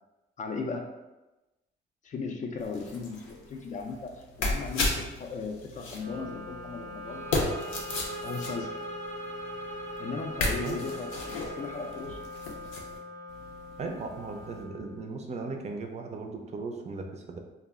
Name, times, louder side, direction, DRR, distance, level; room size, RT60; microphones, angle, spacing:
voice 1, 0.4-0.9 2.0-7.6 8.2-8.7 10.0-12.2, left 4 dB, 40° left, 4 dB, 0.4 m, -37 dB
sound 1, 2.6-13.0 13.3-14.6, left 2 dB, 85° left, 0.6 m, -36 dB
Wind instrument woodwind instrument, 5.9-15.5, left 2 dB, 85° right, 0.7 m, -43 dB
sound 2, 7.0-12.0, right 4 dB, 10° left, 0.7 m, -42 dB
voice 2, 13.8-17.4, right 3 dB, 35° right, 4 dB, 0.4 m, -37 dB
2.3 x 2.0 x 3.5 m, 1.1 s
cardioid pair, 90°, 20 cm